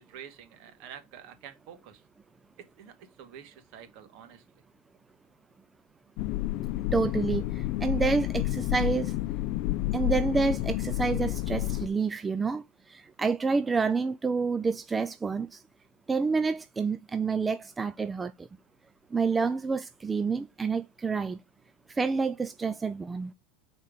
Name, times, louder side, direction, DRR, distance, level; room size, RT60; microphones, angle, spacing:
voice 1, 0.0-2.0 2.6-2.9 3.2-4.4, right 9 dB, 50° right, 1.6 m, -48 dB
sound 1, 6.2-11.9, left 16 dB, 45° left, 0.7 m, -30 dB
voice 2, 6.9-9.1 9.9-15.6 16.1-18.5 19.1-21.4 21.9-23.3, right 4 dB, 10° right, 0.3 m, -28 dB
6.6 x 4.4 x 5.1 m
supercardioid pair, 160°, 0 cm